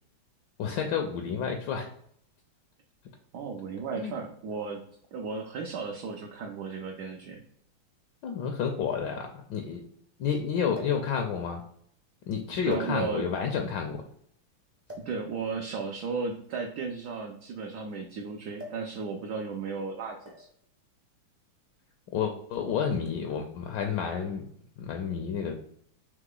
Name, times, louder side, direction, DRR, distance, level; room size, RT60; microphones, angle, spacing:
voice 1, 0.6-1.9 4.0-4.2 8.2-9.8 10.2-11.6 12.3-14.0 22.1-24.4 24.8-25.5, left 7 dB, 75° left, 4 dB, 1.2 m, -30 dB
voice 2, 3.3-4.8 5.1-7.4 12.7-13.3 15.0-20.5, right 5 dB, 75° right, 2 dB, 1.0 m, -35 dB
sound 1, 8.2-8.3 8.5-8.6 10.7-11.1 11.9-12.1 12.7-13.4 14.9-15.2 16.3-18.0 18.6-18.9 19.2-19.5 20.2-20.6 21.6-21.8, left 1 dB, 20° right, 0.4 m, -47 dB
3.7 x 3.1 x 3.8 m, 0.69 s
omnidirectional pair, 2.2 m